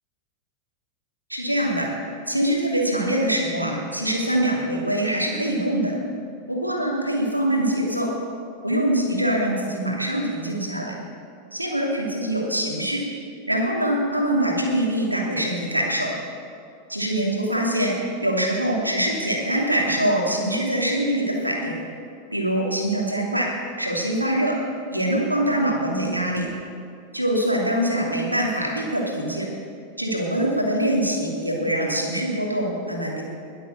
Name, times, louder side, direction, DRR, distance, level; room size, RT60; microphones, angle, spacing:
voice 1, 1.3-1.9 2.3-5.9 6.5-8.1 8.6-10.9 11.5-13.0 13.5-16.1 16.9-21.8 22.3-23.5 23.8-24.6 24.9-26.5 27.1-29.5 30.0-33.2, right 1 dB, 85° right, -1 dB, 2.9 m, -24 dB
21.5 x 8.0 x 6.9 m, 2.4 s
figure-of-eight pair, 90°, 0 cm